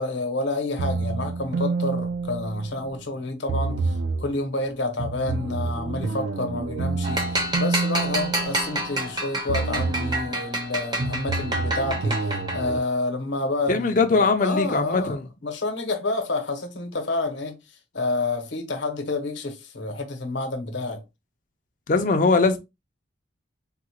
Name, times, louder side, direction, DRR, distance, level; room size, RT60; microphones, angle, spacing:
voice 1, 0.0-15.2 15.4-17.6 17.9-21.0, left 2 dB, 80° left, 0.8 m, -29 dB
sound 1, 0.8-3.0 3.5-4.3 5.0-9.1 9.5-10.3 11.0-12.8, right 3 dB, 75° right, 0.4 m, -28 dB
sound 2, 7.0-12.8, right 1 dB, 20° right, 0.5 m, -29 dB
voice 2, 13.7-15.2 21.9-22.6, left 3 dB, 45° left, 0.4 m, -21 dB
3.7 x 2.1 x 2.8 m
head